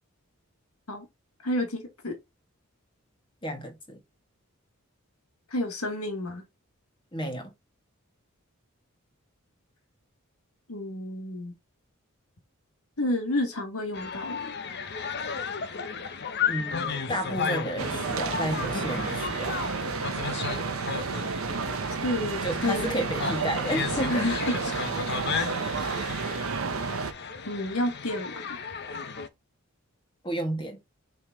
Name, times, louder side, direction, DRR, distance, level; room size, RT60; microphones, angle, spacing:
voice 1, 1.4-2.2 5.5-6.4 10.7-11.5 13.0-14.5 22.0-22.9 24.1-24.6 25.7-26.2 27.4-28.5, left 1 dB, 90° left, 1.7 m, -30 dB
voice 2, 3.4-4.0 7.1-7.5 16.5-19.6 22.4-24.3 30.2-30.8, equal, 25° left, 1.8 m, -32 dB
sound 1, 13.9-29.3, left 6 dB, 50° left, 0.8 m, -34 dB
sound 2, 17.8-27.1, right 5 dB, 75° right, 0.8 m, -31 dB
6.2 x 4.7 x 3.6 m
head